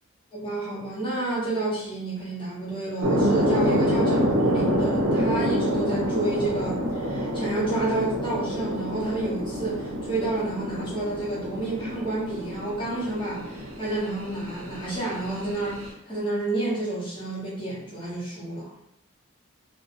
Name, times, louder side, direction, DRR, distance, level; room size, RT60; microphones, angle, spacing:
voice 1, 0.3-18.7, right 2 dB, 25° left, -7 dB, 1.0 m, -30 dB
sound 1, 3.0-15.9, equal, 80° right, 0.6 m, -27 dB
2.5 x 2.3 x 2.5 m, 0.75 s
head